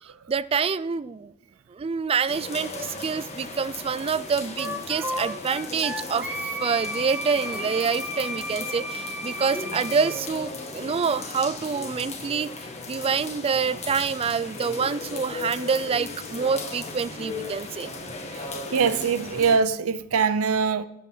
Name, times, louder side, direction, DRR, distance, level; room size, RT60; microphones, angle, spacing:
voice 1, 0.3-1.3 1.7-6.3 6.6-12.5 12.9-17.9, right 5 dB, 25° right, 0.3 m, -26 dB
sound 1, 2.3-19.6, left 3 dB, 30° left, 1.6 m, -37 dB
Wind instrument woodwind instrument, 4.6-10.2, equal, 10° right, 1.1 m, -33 dB
voice 2, 18.3-20.8, right 5 dB, 80° right, 0.6 m, -23 dB
14.0 x 5.5 x 6.1 m
head